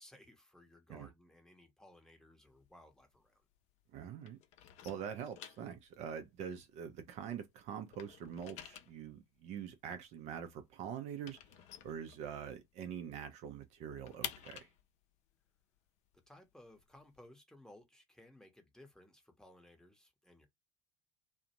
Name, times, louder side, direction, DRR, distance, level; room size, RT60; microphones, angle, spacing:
voice 1, 0.0-3.4 16.3-20.5, left 1 dB, 5° left, 0.8 m, -60 dB
sound 1, 2.5-3.9 4.2-7.4 7.7-12.7 13.1-13.2 13.5-17.2, left 11 dB, 50° left, 0.5 m, -51 dB
voice 2, 3.9-4.4 4.8-11.4 11.8-14.7, right 8 dB, 50° right, 0.5 m, -44 dB
2.5 x 2.1 x 2.8 m
hypercardioid pair, 70°, 15 cm